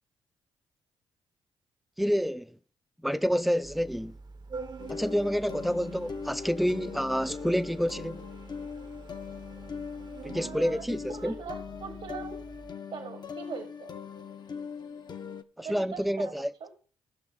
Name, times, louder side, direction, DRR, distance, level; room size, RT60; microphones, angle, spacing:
voice 1, 2.0-2.6 3.0-4.1 4.9-8.3 10.2-11.3 15.6-16.5, equal, ahead, 0.5 m, -28 dB
Organ, 3.6-12.7, right 4 dB, 45° right, 0.9 m, -46 dB
sound 1, 4.8-15.4, left 6 dB, 45° left, 0.8 m, -41 dB
voice 2, 10.3-10.8 11.1-12.4 12.9-13.9 15.6-16.3 16.6-16.7, right 5 dB, 65° right, 1.3 m, -40 dB
14.5 x 6.2 x 3.9 m
supercardioid pair, 55°, 10 cm